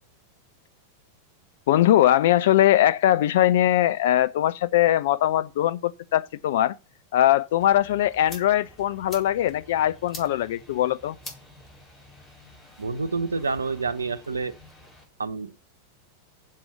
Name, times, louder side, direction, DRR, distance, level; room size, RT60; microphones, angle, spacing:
voice 1, 1.7-6.8 7.1-11.2, left 12 dB, 55° left, 0.7 m, -21 dB
sound 1, 7.6-15.0, left 1 dB, 20° left, 4.6 m, -47 dB
voice 2, 12.8-14.5 15.2-15.5, right 4 dB, 75° right, 0.8 m, -28 dB
7.8 x 7.5 x 6.8 m
figure-of-eight pair, 90°, 0 cm